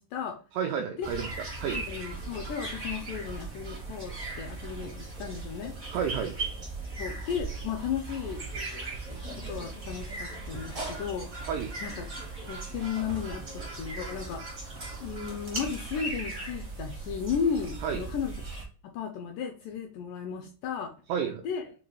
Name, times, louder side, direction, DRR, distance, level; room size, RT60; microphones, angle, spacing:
voice 1, 0.0-0.4 1.0-1.1 1.7-5.7 7.0-8.4 9.5-11.3 11.8-12.2 12.5-14.5 14.9-18.3 18.9-20.9 21.4-21.7, left 7 dB, 85° left, 4 dB, 1.9 m, -34 dB
voice 2, 0.6-1.8 5.9-6.4 11.5-11.7 17.8-18.0 21.1-21.4, right 7 dB, 85° right, 4 dB, 1.8 m, -31 dB
sound 1, 1.0-18.6, right 3 dB, 50° right, 0.9 m, -38 dB
6.0 x 2.4 x 3.0 m, 0.39 s
omnidirectional pair, 4.2 m